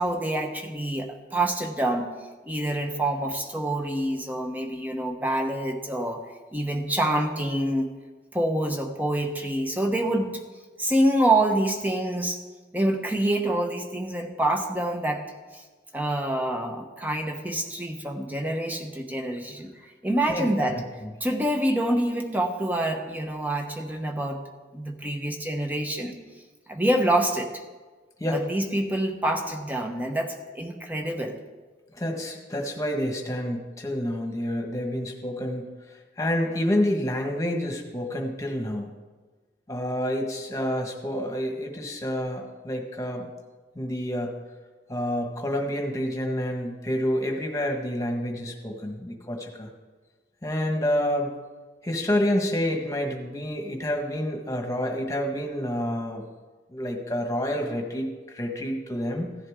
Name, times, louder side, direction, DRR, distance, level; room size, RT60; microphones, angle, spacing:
voice 1, 0.0-2.1 2.4-6.2 6.5-7.9 8.3-10.4 10.8-12.4 12.7-15.2 15.5-15.6 15.9-20.8 21.2-24.4 24.7-26.2 26.7-27.6 28.3-31.4, right 1 dB, 10° right, 3 dB, 1.1 m, -26 dB
voice 2, 31.9-35.7 36.2-38.9 39.7-43.3 43.7-44.3 44.9-49.7 50.4-51.3 51.8-56.2 56.7-59.4, left 1 dB, 20° left, 2 dB, 1.5 m, -28 dB
16.0 x 10.5 x 3.7 m, 1.3 s
head